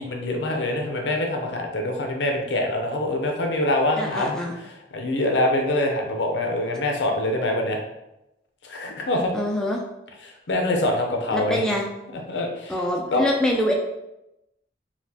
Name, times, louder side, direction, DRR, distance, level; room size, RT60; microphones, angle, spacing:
voice 1, 0.0-7.8 8.6-9.3 10.2-11.6 12.3-12.7 13.1-13.3, left 1 dB, 80° left, 2 dB, 0.6 m, -25 dB
voice 2, 4.0-4.5 9.3-9.8 11.3-11.9 12.7-13.7, left 1 dB, 5° left, -2 dB, 0.3 m, -25 dB
4.1 x 2.3 x 2.8 m, 0.91 s
head